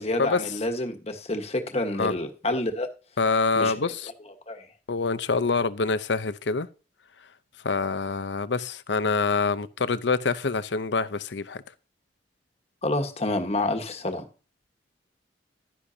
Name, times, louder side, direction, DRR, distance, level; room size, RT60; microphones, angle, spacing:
voice 1, 0.0-2.9 3.6-3.7 4.5-4.7 12.8-14.3, left 1 dB, 35° left, 1.4 m, -28 dB
voice 2, 3.2-4.1 4.9-6.7 7.6-11.6, left 4 dB, 75° left, 0.7 m, -26 dB
11.5 x 10.0 x 2.8 m
head